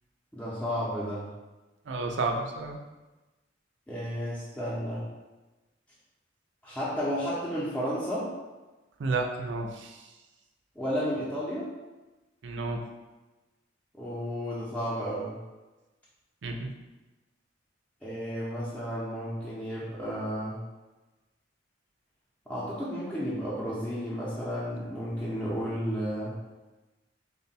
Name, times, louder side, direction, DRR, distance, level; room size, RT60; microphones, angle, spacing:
voice 1, 0.3-1.3 3.9-5.1 6.6-8.3 10.8-11.7 14.0-15.4 18.0-20.6 22.5-26.4, equal, 5° left, -9 dB, 0.6 m, -32 dB
voice 2, 1.9-2.8 9.0-10.0 12.4-12.8 16.4-16.6, right 3 dB, 65° right, 2 dB, 0.5 m, -31 dB
3.6 x 2.2 x 4.0 m, 1.1 s
head